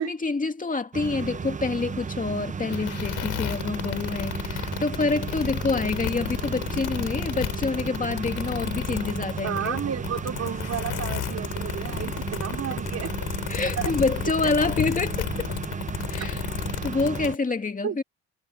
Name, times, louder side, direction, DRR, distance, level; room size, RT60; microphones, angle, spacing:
voice 1, 0.0-9.8 13.5-15.5 16.1-16.4 16.8-18.0, left 3 dB, 25° left, 2.4 m, -27 dB
sound 1, 0.9-17.3, right 6 dB, 25° right, 0.7 m, -34 dB
sound 2, 2.7-17.4, left 14 dB, 90° left, 3.6 m, -33 dB
voice 2, 9.1-13.2 13.8-13.9 14.6-14.7 17.8-18.0, right 9 dB, 55° right, 3.4 m, -32 dB
sound 3, 9.5-16.2, left 13 dB, 65° left, 0.9 m, -40 dB
cardioid pair, 90°, 30 cm